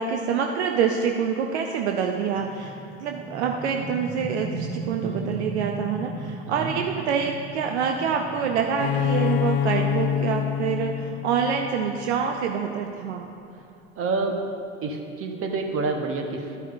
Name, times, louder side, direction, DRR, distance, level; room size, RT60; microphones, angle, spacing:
voice 1, 0.0-13.3, right 6 dB, 70° right, 3 dB, 0.7 m, -26 dB
sound 1, 2.3-13.8, right 2 dB, 25° left, 1.5 m, -38 dB
voice 2, 5.0-5.3 6.5-6.8 14.0-14.4 14.8-16.6, right 3 dB, 35° right, 3 dB, 1.1 m, -28 dB
Bowed string instrument, 8.8-12.4, left 9 dB, 55° left, 0.6 m, -26 dB
12.0 x 9.7 x 2.6 m, 2.6 s
figure-of-eight pair, 80°, 36 cm